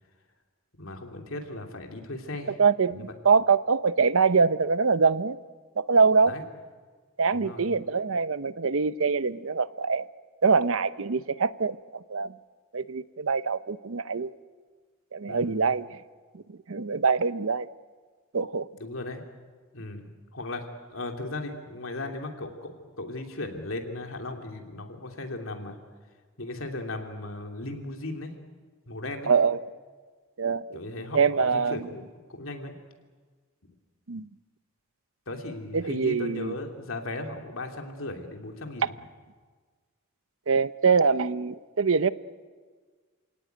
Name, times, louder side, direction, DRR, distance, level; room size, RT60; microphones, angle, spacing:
voice 1, 0.7-2.6 2.9-3.0 6.3-6.5 7.3-7.6 15.3-15.6 18.8-19.2 19.7-20.6 20.9-25.8 26.4-28.3 28.9-29.3 30.7-32.0 32.3-32.7 35.3-38.8, left 2 dB, 75° left, 3 dB, 3.0 m, -37 dB
voice 2, 2.6-5.4 5.8-6.3 7.2-10.1 10.4-11.8 12.1-12.3 12.7-14.3 15.1-16.0 16.7-17.7 18.3-18.7 29.3-29.6 30.4-30.8 31.1-31.9 34.1-34.3 35.7-36.5 40.5-42.1, right 5 dB, 75° right, 15 dB, 0.7 m, -24 dB
28.0 x 18.0 x 9.3 m, 1.5 s
head